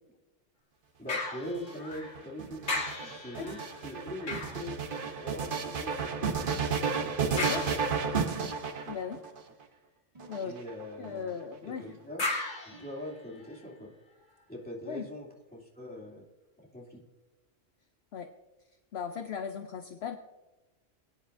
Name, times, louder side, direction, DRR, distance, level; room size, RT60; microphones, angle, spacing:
voice 1, 1.0-2.6 3.0-4.8 5.0-8.1 10.4-11.3 11.6-12.2 12.6-13.9 14.5-16.3 16.7-17.0, left 1 dB, 5° left, -5 dB, 2.7 m, -43 dB
sound 1, 1.1-2.3 2.6-5.5 7.4-8.3 12.2-13.6 14.2-14.3, left 2 dB, 80° left, 2.9 m, -37 dB
sound 2, 1.4-9.4 10.2-11.1, right 5 dB, 50° right, 1.0 m, -32 dB
voice 2, 7.3-7.7 8.9-9.2 10.3-10.5 11.0-11.9 14.9-15.1 18.1-18.3 18.9-20.2, left 7 dB, 65° left, 7 dB, 0.9 m, -37 dB
sound 3, 8.4-8.8 10.1-10.5 11.0-11.4 11.9-12.2 12.7-13.0, right 2 dB, 30° right, 2.6 m, -55 dB
21.5 x 9.9 x 2.6 m, 1.1 s
omnidirectional pair, 1.3 m